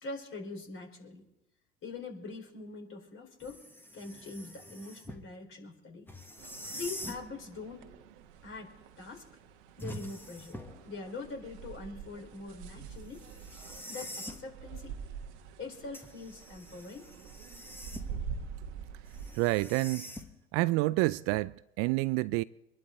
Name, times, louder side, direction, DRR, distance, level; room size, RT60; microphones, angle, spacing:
voice 1, 0.0-1.2 1.8-3.6 3.9-6.1 6.7-7.9 8.4-9.3 9.8-10.6 10.8-13.3 13.9-15.0 15.6-17.1, left 3 dB, 35° left, 4.4 m, -43 dB
sound 1, 3.4-5.3 6.1-7.3 9.8-10.9 13.1-14.5 15.9-18.3 19.1-20.6, left 1 dB, 5° left, 1.6 m, -45 dB
sound 2, 6.4-19.8, right 6 dB, 60° right, 1.5 m, -46 dB
voice 2, 19.4-20.1 20.5-22.4, right 21 dB, 40° right, 0.4 m, -28 dB
24.5 x 11.0 x 3.9 m
figure-of-eight pair, 80°, 37 cm